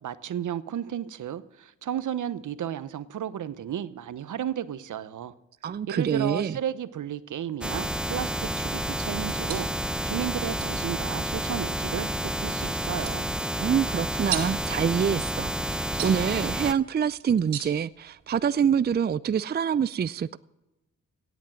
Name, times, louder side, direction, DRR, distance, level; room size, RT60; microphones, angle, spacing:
voice 1, 0.0-5.3 5.9-13.3, right 10 dB, 65° right, 0.9 m, -33 dB
voice 2, 5.6-6.6 13.6-20.4, right 7 dB, 30° right, 0.4 m, -26 dB
sound 1, 7.6-16.7, equal, 5° right, 0.9 m, -30 dB
sound 2, 9.1-18.6, right 9 dB, 90° right, 2.4 m, -41 dB
17.0 x 8.3 x 6.3 m
supercardioid pair, 50°, 33 cm